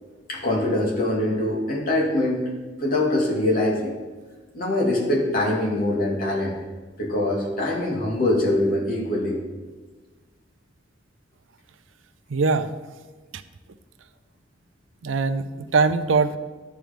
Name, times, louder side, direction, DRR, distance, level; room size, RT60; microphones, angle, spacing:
voice 1, 0.3-2.4 2.8-3.9 4.5-6.6 7.0-9.4, left 1 dB, 50° left, -3 dB, 2.1 m, -23 dB
voice 2, 12.3-12.7 13.3-13.4 15.0-16.4, right 4 dB, 85° right, 12 dB, 0.5 m, -22 dB
12.5 x 4.6 x 5.1 m, 1.3 s
head